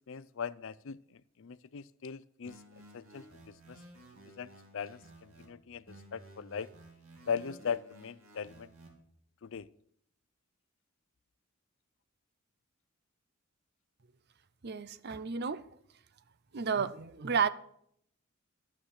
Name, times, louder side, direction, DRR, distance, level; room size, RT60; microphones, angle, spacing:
voice 1, 0.1-2.6 2.9-3.3 3.7-3.8 4.4-6.7 7.3-8.7 9.4-9.7, left 6 dB, 65° left, 0.5 m, -39 dB
sound 1, 2.4-5.5 5.9-8.9, right 1 dB, 85° right, 3.0 m, -55 dB
voice 2, 14.6-15.6 16.5-17.5, right 6 dB, 50° right, 0.6 m, -32 dB
11.5 x 7.3 x 6.5 m
head